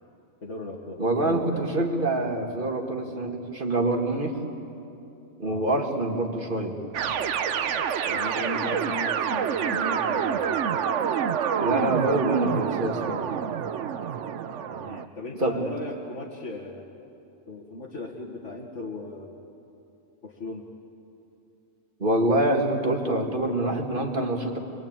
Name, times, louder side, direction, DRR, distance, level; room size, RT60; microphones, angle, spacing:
voice 1, 0.4-1.6 5.4-5.7 8.0-10.8 14.7-16.9 17.5-19.3 20.2-20.7, left 2 dB, 60° left, -2 dB, 2.2 m, -37 dB
voice 2, 1.0-4.3 5.4-6.8 11.6-13.2 15.4-15.7 22.0-24.6, right 1 dB, 40° right, 2 dB, 2.3 m, -26 dB
sound 1, 6.9-15.1, right 8 dB, 65° right, 1.1 m, -27 dB
26.0 x 22.0 x 9.0 m, 2.8 s
omnidirectional pair, 1.4 m